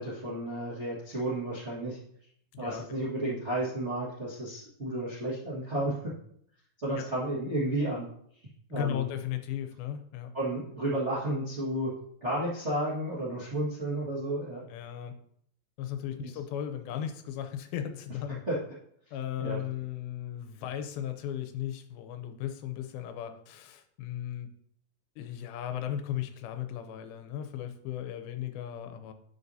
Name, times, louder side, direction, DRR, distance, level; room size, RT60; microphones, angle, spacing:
voice 1, 0.0-2.0 2.6-6.1 6.8-8.1 8.7-9.0 10.3-11.9 12.2-14.6 16.2-16.3 18.5-18.6 19.4-19.6, right 1 dB, 50° right, -7 dB, 0.8 m, -32 dB
voice 2, 2.5-3.1 7.0-7.1 8.7-10.3 14.7-15.1 15.8-18.4 19.1-24.5 25.2-29.1, left 10 dB, 85° left, 7 dB, 2.6 m, -36 dB
9.3 x 6.0 x 2.7 m, 0.67 s
omnidirectional pair, 4.2 m